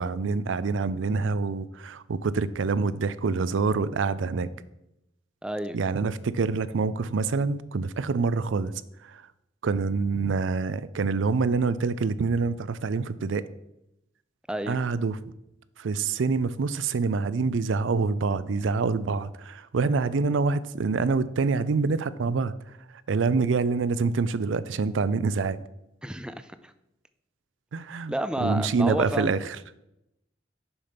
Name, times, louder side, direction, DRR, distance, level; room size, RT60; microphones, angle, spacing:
voice 1, 0.0-4.5 5.7-8.7 9.6-13.4 14.7-15.2 15.8-22.5 23.1-25.6 27.7-28.1 28.4-29.6, right 4 dB, 85° right, 0.4 m, -26 dB
voice 2, 5.4-5.8 14.5-14.8 26.0-26.7 28.1-29.3, right 1 dB, 5° right, 0.4 m, -30 dB
7.0 x 5.7 x 5.1 m
head